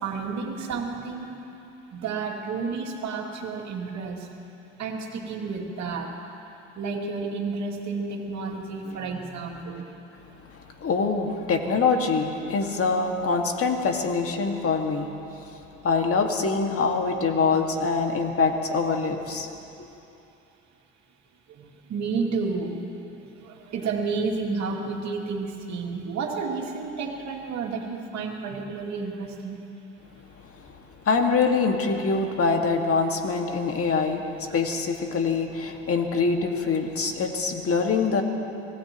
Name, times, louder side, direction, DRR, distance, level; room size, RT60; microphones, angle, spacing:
voice 1, 0.0-1.4 1.9-4.3 4.8-6.1 6.8-9.9 21.6-22.8 23.2-29.6 34.5-34.6, right 4 dB, 55° right, 0 dB, 2.6 m, -31 dB
voice 2, 10.5-15.1 15.4-19.5 31.1-38.2, left 4 dB, 45° left, 3 dB, 2.0 m, -24 dB
25.0 x 17.0 x 3.1 m, 2.8 s
hypercardioid pair, 70°, 33 cm